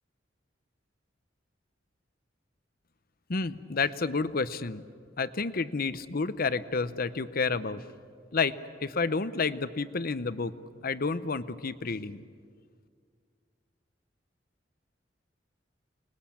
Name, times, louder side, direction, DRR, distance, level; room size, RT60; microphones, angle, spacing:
voice 1, 3.3-4.8 5.2-7.8 8.3-8.5 8.8-10.5 10.8-12.2, left 4 dB, 50° left, 14 dB, 0.8 m, -30 dB
28.0 x 20.5 x 8.6 m, 2.1 s
head